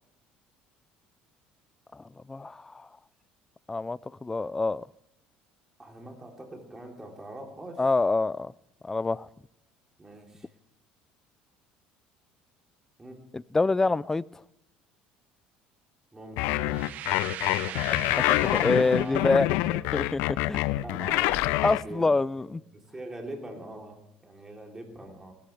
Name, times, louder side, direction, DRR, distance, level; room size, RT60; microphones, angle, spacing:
voice 1, 1.9-2.9 3.7-4.9 7.8-8.5 8.8-9.3 13.3-14.4 17.9-18.2 18.5-19.5 19.9-20.6 21.6-22.6, left 3 dB, 15° left, 22 dB, 0.4 m, -26 dB
voice 2, 5.8-7.8 10.0-10.5 13.0-13.2 16.1-16.8 17.6-18.4 18.9-19.3 19.7-19.8 20.8-22.5 22.7-25.3, right 1 dB, 15° right, 2 dB, 3.4 m, -43 dB
sound 1, 16.4-21.8, left 17 dB, 80° left, 0.5 m, -26 dB
sound 2, 16.7-19.5, right 11 dB, 60° right, 0.9 m, -40 dB
19.0 x 13.0 x 3.4 m, 0.85 s
cardioid pair, 110°, 3 cm